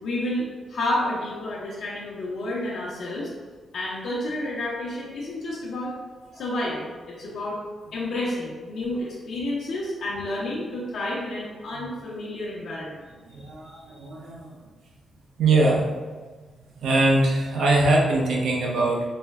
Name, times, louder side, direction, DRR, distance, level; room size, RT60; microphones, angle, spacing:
voice 1, 0.0-3.3 3.7-5.9 6.3-7.6 7.9-13.1 13.6-13.8, left 1 dB, 85° left, -7 dB, 0.7 m, -30 dB
voice 2, 13.3-14.5 15.4-15.8 16.8-19.0, right 2 dB, 80° right, -2 dB, 0.6 m, -22 dB
4.2 x 2.2 x 3.4 m, 1.4 s
cardioid pair, 110°, 0 cm